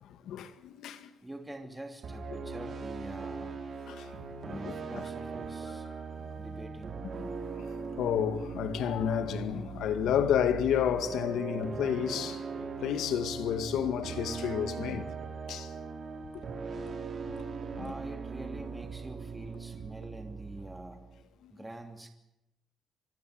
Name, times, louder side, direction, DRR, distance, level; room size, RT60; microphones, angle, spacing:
voice 1, 0.1-1.1 3.9-4.1 4.5-5.0 7.1-7.3 8.0-15.1 15.5-15.7 16.8-16.9 17.7-17.9 21.4-21.5, left 9 dB, 80° left, 2.1 m, -31 dB
voice 2, 1.2-3.6 4.4-5.9 6.4-7.0 17.8-21.1 21.5-22.1, right 1 dB, 10° right, 2.8 m, -45 dB
sound 1, 2.0-21.2, right 5 dB, 50° right, 4.4 m, -40 dB
25.0 x 20.5 x 8.0 m
cardioid pair, 90°, 0 cm